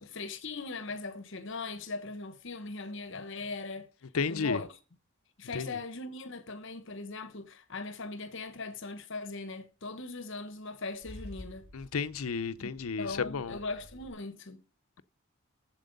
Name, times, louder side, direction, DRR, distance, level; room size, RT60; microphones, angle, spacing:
voice 1, 0.0-3.9 4.3-4.8 5.4-11.7 12.6-14.6, left 3 dB, 60° left, 1.1 m, -39 dB
voice 2, 4.1-4.6 5.5-5.8 11.7-13.6, left 5 dB, 80° left, 0.6 m, -32 dB
Car / Engine starting / Idling, 10.6-14.1, left 1 dB, 85° right, 6.6 m, -51 dB
7.5 x 7.5 x 5.3 m
head